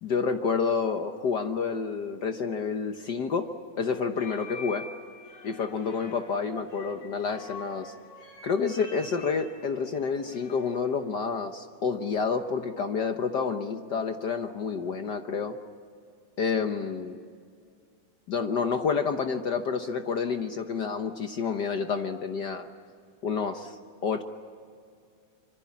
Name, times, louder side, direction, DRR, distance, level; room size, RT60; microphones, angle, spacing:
voice 1, 0.0-3.5 3.8-4.8 5.4-7.9 8.4-15.6 16.4-17.2 18.3-22.7 23.2-23.8 24.0-24.2, left 5 dB, 65° left, 7 dB, 1.0 m, -29 dB
sound 1, 3.9-10.9, left 3 dB, 85° left, 4.3 m, -46 dB
26.0 x 25.5 x 8.5 m, 2.2 s
omnidirectional pair, 3.3 m